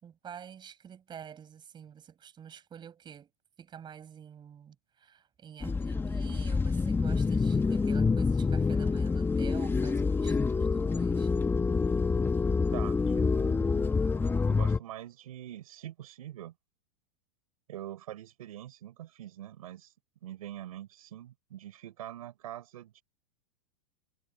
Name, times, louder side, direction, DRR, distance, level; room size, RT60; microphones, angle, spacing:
voice 1, 0.0-3.3 3.6-11.3, right 8 dB, 25° right, 6.2 m, -48 dB
sound 1, 5.6-14.8, left 4 dB, 10° left, 1.6 m, -27 dB
voice 2, 12.7-13.9 14.4-16.5 17.7-19.9 20.2-23.0, right 12 dB, 80° right, 6.4 m, -44 dB
hypercardioid pair, 125°, 18 cm